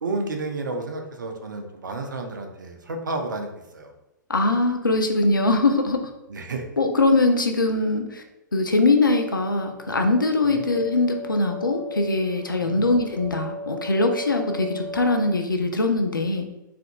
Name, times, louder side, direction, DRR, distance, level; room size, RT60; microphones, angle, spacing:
voice 1, 0.0-3.5 3.7-3.9 6.3-6.6 10.4-10.6 12.6-12.9, right 3 dB, 70° right, 3 dB, 0.6 m, -31 dB
voice 2, 4.3-6.1 6.8-8.2 8.5-16.5, left 2 dB, 80° left, 5 dB, 0.6 m, -22 dB
sound 1, 9.1-15.4, left 2 dB, 30° right, 0.5 m, -37 dB
3.6 x 3.4 x 2.2 m, 0.94 s
figure-of-eight pair, 110°, 11 cm